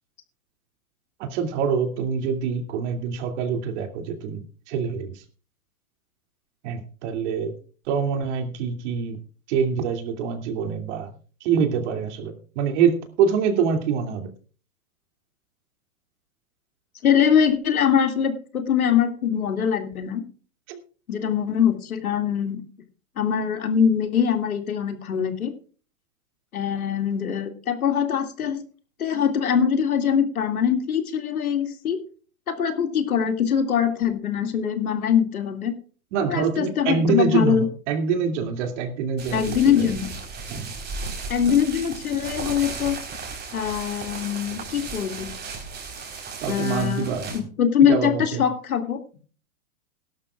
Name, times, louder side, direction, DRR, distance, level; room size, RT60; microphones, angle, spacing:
voice 1, 1.2-5.2 6.6-7.5 7.9-9.2 9.5-11.1 11.4-14.3 20.7-20.8 36.1-39.9 40.5-40.7 46.4-47.5 47.9-48.4, right 6 dB, 55° right, 5 dB, 2.7 m, -25 dB
voice 2, 17.0-20.2 21.1-22.6 23.2-25.5 26.5-28.6 29.0-32.0 32.5-35.7 36.3-37.7 39.3-40.1 41.3-43.0 43.5-45.3 46.5-49.0, left 8 dB, 85° left, 6 dB, 2.5 m, -23 dB
sound 1, 39.2-47.4, right 4 dB, 25° right, 4.2 m, -35 dB
18.0 x 12.0 x 2.4 m, 0.39 s
hypercardioid pair, 120°, 42 cm